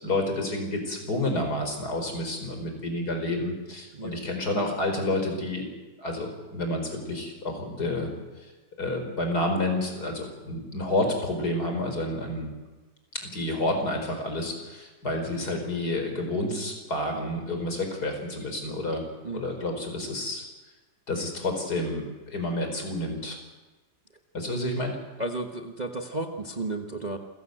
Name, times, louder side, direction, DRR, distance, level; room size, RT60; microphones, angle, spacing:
voice 1, 0.0-5.7 6.0-8.1 8.8-12.5 13.2-19.0 19.3-20.4 21.1-23.4 24.3-25.0, left 1 dB, 60° left, 4 dB, 4.9 m, -29 dB
voice 2, 25.2-27.2, right 2 dB, 25° right, 4 dB, 1.3 m, -33 dB
27.5 x 16.5 x 7.9 m, 1.2 s
omnidirectional pair, 1.9 m